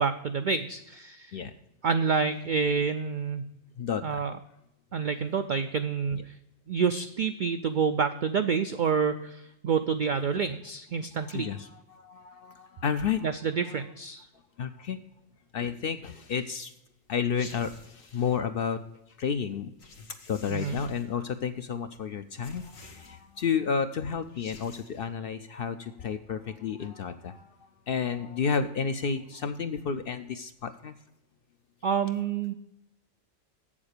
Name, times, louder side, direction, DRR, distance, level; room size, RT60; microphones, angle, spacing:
voice 1, 0.0-1.3 1.8-3.5 4.0-4.3 4.9-6.3 6.7-11.5 13.2-14.3 20.5-20.8 31.8-32.5, right 6 dB, 70° right, 9 dB, 0.4 m, -28 dB
voice 2, 3.8-4.2 6.1-6.2 11.2-13.3 14.6-15.0 15.5-16.7 17.1-18.8 19.2-19.7 20.3-27.5 27.9-30.9, left 6 dB, 60° left, 9 dB, 0.6 m, -31 dB
sound 1, 17.4-18.1 19.8-21.2 22.4-23.4 24.2-25.1, left 3 dB, 85° left, 1.9 m, -50 dB
7.9 x 7.3 x 6.5 m, 0.84 s
omnidirectional pair, 1.4 m